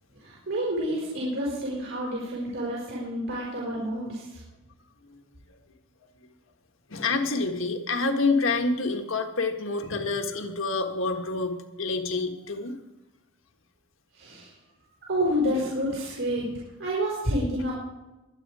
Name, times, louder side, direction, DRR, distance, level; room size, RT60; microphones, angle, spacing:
voice 1, 0.1-4.4 14.1-14.5 15.1-17.8, equal, 70° right, -5 dB, 4.8 m, -29 dB
voice 2, 6.9-12.7, left 3 dB, 70° left, 5 dB, 1.6 m, -27 dB
22.5 x 8.7 x 4.9 m, 1.0 s
head